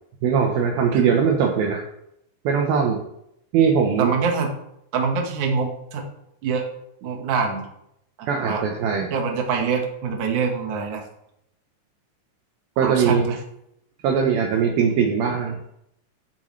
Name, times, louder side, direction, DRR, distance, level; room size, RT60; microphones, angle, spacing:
voice 1, 0.2-1.8 2.4-3.0 3.5-4.1 8.3-9.1 12.8-13.3 14.0-15.6, right 6 dB, 80° right, 1 dB, 2.1 m, -20 dB
voice 2, 4.0-4.5 4.9-6.0 6.4-6.7 7.0-7.7 8.2-8.6 9.1-11.0 12.8-13.4, right 5 dB, 60° right, 2 dB, 2.2 m, -25 dB
16.0 x 7.8 x 3.3 m, 0.77 s
omnidirectional pair, 5.6 m